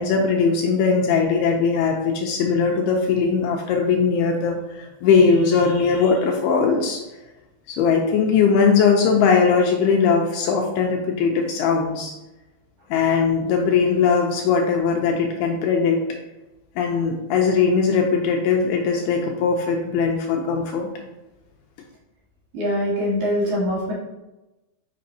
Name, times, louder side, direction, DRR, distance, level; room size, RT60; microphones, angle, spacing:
voice 1, 0.0-7.0 7.7-12.1 12.9-16.0 16.8-20.9, left 5 dB, 85° left, 1 dB, 2.4 m, -20 dB
voice 2, 22.5-23.9, equal, 55° right, -6 dB, 2.6 m, -23 dB
7.5 x 5.9 x 2.8 m, 1.0 s
omnidirectional pair, 5.0 m